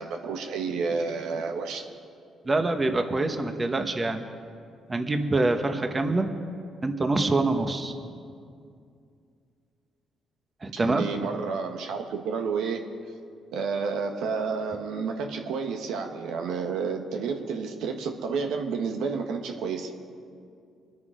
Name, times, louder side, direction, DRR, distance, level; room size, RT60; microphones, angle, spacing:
voice 1, 0.0-1.9 10.7-12.9 13.5-20.0, right 5 dB, 90° right, 4 dB, 1.3 m, -30 dB
voice 2, 2.4-4.2 4.9-6.3 6.8-7.9 10.6-11.0, right 2 dB, 25° right, 6 dB, 1.3 m, -25 dB
25.5 x 9.5 x 5.1 m, 2.4 s
cardioid pair, 90°, 0 cm